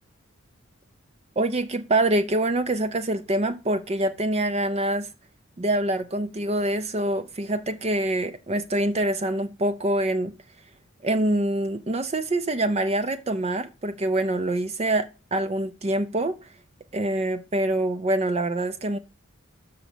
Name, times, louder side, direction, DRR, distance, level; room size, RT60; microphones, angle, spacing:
voice 1, 1.4-5.1 5.6-10.4 11.0-16.5 16.9-19.0, right 1 dB, 30° right, 0.5 m, -25 dB
6.7 x 5.0 x 6.1 m
head